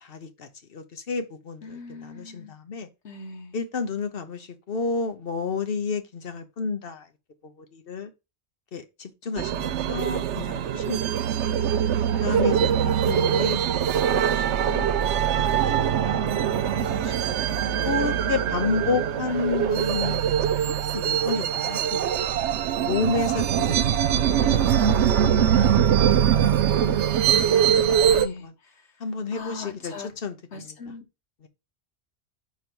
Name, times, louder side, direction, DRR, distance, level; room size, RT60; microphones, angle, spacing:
voice 1, 0.0-2.9 3.5-7.1 7.4-8.1 8.7-11.7 12.2-14.9 15.4-17.1 17.8-22.2 22.8-24.6 28.2-28.5 29.0-29.9 30.2-30.7, left 4 dB, 60° left, 1.1 m, -31 dB
voice 2, 1.6-2.5 3.0-3.6 27.3-29.0 29.3-30.2 30.5-31.0, left 4 dB, 85° left, 1.5 m, -41 dB
sound 1, 9.4-28.3, right 9 dB, 90° right, 0.9 m, -22 dB
4.6 x 4.6 x 5.3 m
omnidirectional pair, 1.1 m